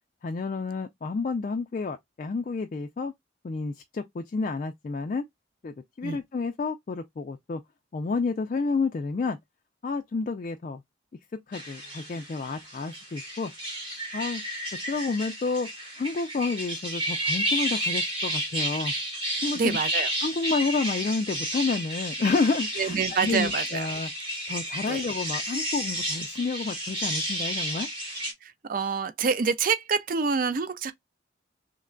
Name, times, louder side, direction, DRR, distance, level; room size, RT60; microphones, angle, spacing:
voice 1, 0.2-3.1 3.4-5.2 5.6-7.6 7.9-9.4 9.8-10.8 11.5-13.5 14.1-14.4 14.9-15.7 16.0-18.9 19.4-19.8 20.2-24.1 24.5-27.9, left 4 dB, 40° left, 0.3 m, -30 dB
sound 1, 11.5-28.3, right 1 dB, 25° right, 0.9 m, -32 dB
voice 2, 19.6-20.1 22.8-23.9 24.8-25.0 28.4-30.9, right 5 dB, 45° right, 0.4 m, -27 dB
3.2 x 2.2 x 3.7 m
head